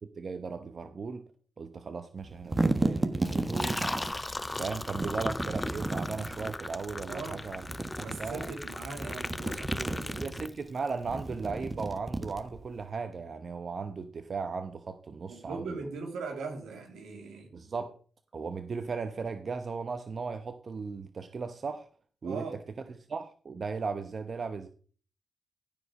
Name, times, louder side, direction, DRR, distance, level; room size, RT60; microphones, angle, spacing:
voice 1, 0.0-1.2 1.6-4.1 4.6-7.7 8.0-8.5 10.2-15.8 17.5-18.0 18.3-21.9 22.2-22.5 22.9-24.7, right 4 dB, 55° right, 0.9 m, -37 dB
sound 1, 2.2-4.2 5.0-6.6 7.5-8.5 8.9-10.4 11.0-12.8, right 2 dB, 30° right, 1.3 m, -33 dB
Liquid, 3.2-10.9, left 2 dB, 20° left, 0.4 m, -37 dB
voice 2, 7.1-7.4 8.0-10.2 15.3-17.5 22.2-22.6, right 4 dB, 85° right, 2.2 m, -40 dB
15.0 x 5.2 x 4.9 m
supercardioid pair, 50°, 0 cm